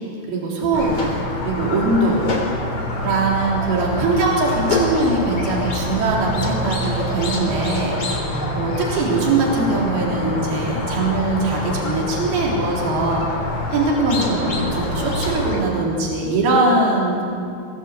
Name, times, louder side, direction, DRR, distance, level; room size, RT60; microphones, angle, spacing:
voice 1, 0.3-1.0 1.4-2.2 3.0-8.2 8.5-13.3 13.7-17.2, right 2 dB, 70° right, -3 dB, 5.6 m, -21 dB
Squeak, 0.7-15.6, left 1 dB, 40° left, 4.1 m, -25 dB
25.0 x 19.5 x 8.2 m, 2.5 s
omnidirectional pair, 4.6 m